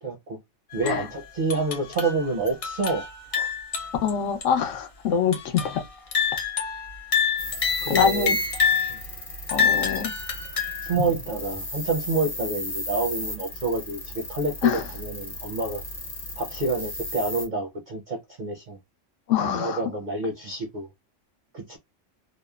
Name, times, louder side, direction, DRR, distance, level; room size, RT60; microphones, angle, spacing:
voice 1, 0.0-0.4 0.7-3.0 3.3-3.5 7.8-8.3 8.9-9.0 10.8-15.8 16.4-18.8 19.5-20.9 21.5-21.8, right 3 dB, 55° right, 0.5 m, -28 dB
sound 1, 0.7-1.0 1.5-4.1 4.4-4.5 5.3-5.8 6.1-9.0 9.5-10.9, left 6 dB, 60° left, 0.3 m, -27 dB
voice 2, 4.0-5.8 7.9-8.4 9.5-10.1 14.6-14.8 19.3-19.8, left 8 dB, 85° left, 1.0 m, -24 dB
sound 2, 7.4-17.5, left 1 dB, 40° left, 0.8 m, -36 dB
2.9 x 2.0 x 2.2 m
omnidirectional pair, 1.3 m